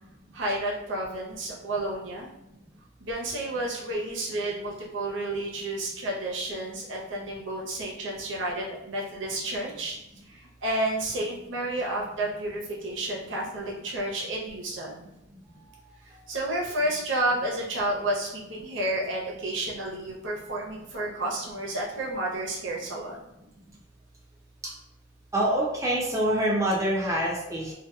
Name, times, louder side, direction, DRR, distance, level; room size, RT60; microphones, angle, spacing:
voice 1, 0.3-2.3 3.0-10.0 10.3-15.1 16.3-23.2, right 1 dB, 85° right, -2 dB, 0.7 m, -31 dB
voice 2, 25.3-27.7, right 1 dB, 15° right, -2 dB, 0.4 m, -26 dB
2.7 x 2.2 x 2.2 m, 0.90 s
head